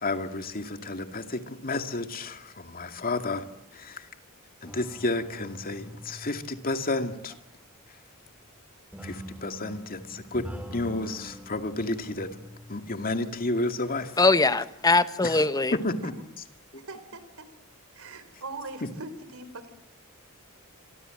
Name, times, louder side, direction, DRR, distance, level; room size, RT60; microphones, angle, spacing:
voice 1, 0.0-3.5 3.7-4.1 4.6-7.3 9.0-10.4 10.7-12.3 12.7-14.1 15.2-15.4 15.7-16.1 16.7-16.8, left 2 dB, 40° left, 2.3 m, -31 dB
sound 1, 4.6-7.7 8.9-13.0, equal, 5° right, 2.9 m, -44 dB
voice 2, 14.2-15.8, left 3 dB, 15° left, 1.1 m, -22 dB
voice 3, 16.9-17.5 17.9-19.7, right 3 dB, 70° right, 4.2 m, -41 dB
27.0 x 24.0 x 7.9 m
head